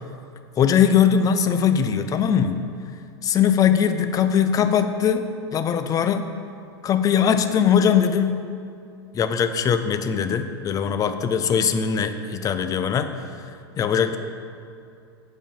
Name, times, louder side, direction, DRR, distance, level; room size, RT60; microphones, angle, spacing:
voice 1, 0.6-2.6 3.2-5.2 5.5-6.3 6.8-8.4 9.1-13.1 13.8-14.2, left 8 dB, 25° left, 9 dB, 0.6 m, -20 dB
8.3 x 5.0 x 7.4 m, 2.5 s
hypercardioid pair, 100°, 14 cm